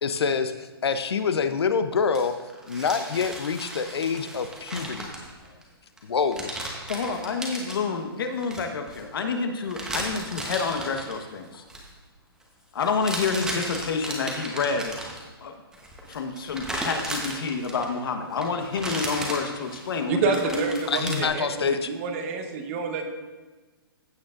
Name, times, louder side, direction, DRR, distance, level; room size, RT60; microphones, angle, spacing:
voice 1, 0.0-2.4 2.7-5.1 6.0-6.5 20.9-21.9, left 5 dB, 85° left, 9 dB, 0.7 m, -26 dB
sound 1, 2.2-5.6 6.0-6.1 6.3-7.8 8.4-9.0 9.7-11.2 11.5-11.9 12.8-15.3 15.7-18.1 18.4-21.3, right 1 dB, 5° right, 1.0 m, -35 dB
voice 2, 6.8-11.6 12.7-15.0 15.4-15.5 16.0-20.6, left 5 dB, 65° left, 5 dB, 1.3 m, -29 dB
voice 3, 20.1-23.1, right 4 dB, 35° right, 5 dB, 1.0 m, -28 dB
15.5 x 6.3 x 2.5 m, 1.3 s
hypercardioid pair, 155°, 13 cm